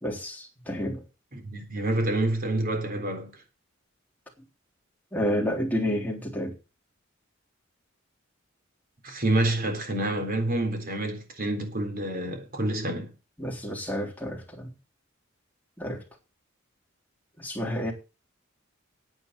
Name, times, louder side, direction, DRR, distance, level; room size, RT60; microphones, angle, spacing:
voice 1, 0.0-1.0 5.1-6.5 13.4-14.7 15.8-16.0 17.4-17.9, equal, 10° left, 3.6 m, -30 dB
voice 2, 1.3-3.3 9.0-13.1, right 2 dB, 45° right, 3.9 m, -28 dB
9.7 x 8.9 x 6.8 m
head